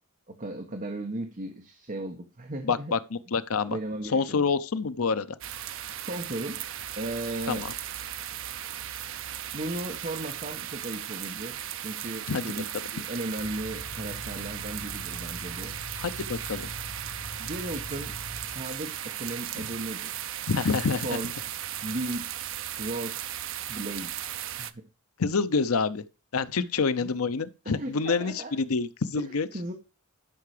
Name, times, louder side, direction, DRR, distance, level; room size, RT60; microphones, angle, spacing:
voice 1, 0.3-2.9 3.7-4.4 5.9-6.6 6.9-7.7 9.5-15.8 17.4-20.3 21.0-21.3 21.8-22.3 22.8-23.4 23.7-24.1 24.6-24.9 26.6-27.1 27.6-28.6 29.2-29.7, right 1 dB, 40° right, 1.3 m, -36 dB
voice 2, 2.6-3.8 4.1-5.3 7.5-7.7 12.3-12.4 16.0-16.7 20.5-21.1 25.2-26.0 26.3-29.5, left 4 dB, 75° left, 0.7 m, -27 dB
sound 1, 5.4-24.7, right 11 dB, 65° right, 0.7 m, -37 dB
sound 2, 13.4-18.9, left 1 dB, 40° left, 1.5 m, -43 dB
12.0 x 5.8 x 5.0 m
head